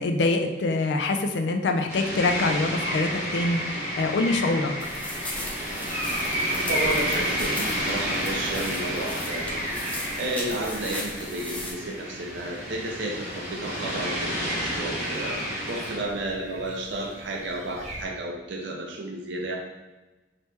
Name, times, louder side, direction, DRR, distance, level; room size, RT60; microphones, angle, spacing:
voice 1, 0.0-4.7, left 3 dB, 75° left, 5 dB, 0.4 m, -25 dB
sound 1, 1.9-16.0, equal, 35° left, 1.1 m, -30 dB
sound 2, 4.8-11.7, left 1 dB, 10° left, 0.5 m, -37 dB
voice 2, 6.6-19.6, right 1 dB, 90° right, 0 dB, 0.5 m, -32 dB
sound 3, 8.1-18.0, right 1 dB, 40° right, 0.6 m, -41 dB
2.9 x 2.9 x 3.3 m, 1.1 s
head